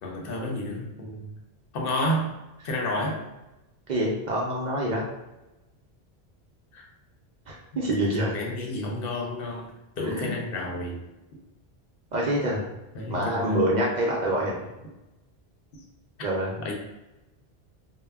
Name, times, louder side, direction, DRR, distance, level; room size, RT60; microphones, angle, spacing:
voice 1, 0.0-1.3 1.7-2.3 2.6-3.2 6.7-6.8 8.0-8.1 8.3-9.7 10.0-11.0 12.9-13.6 16.6-16.7, left 1 dB, 65° left, 0 dB, 0.7 m, -30 dB
voice 2, 3.9-5.0 7.5-8.3 10.0-10.4 12.1-12.7 13.1-14.5 16.2-16.5, right 1 dB, 55° right, -3 dB, 0.5 m, -26 dB
2.2 x 2.1 x 3.4 m, 1.0 s
omnidirectional pair, 1.1 m